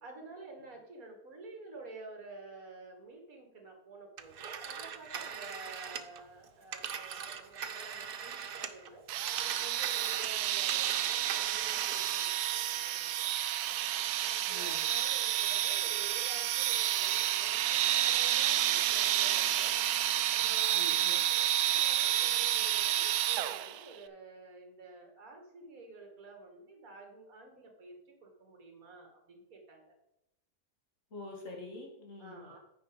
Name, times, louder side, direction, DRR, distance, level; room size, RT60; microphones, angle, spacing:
voice 1, 0.0-13.3 14.2-19.8 20.3-30.0 32.2-32.6, right 3 dB, 65° right, 2 dB, 2.4 m, -51 dB
Telephone, 4.2-8.9 9.2-12.1, right 7 dB, 50° right, 0.7 m, -41 dB
sound 1, 9.1-23.8, right 12 dB, 85° right, 1.1 m, -30 dB
voice 2, 20.7-21.2 31.1-32.5, left 2 dB, 55° left, 0 dB, 2.5 m, -45 dB
9.5 x 5.9 x 5.0 m, 0.86 s
omnidirectional pair, 1.6 m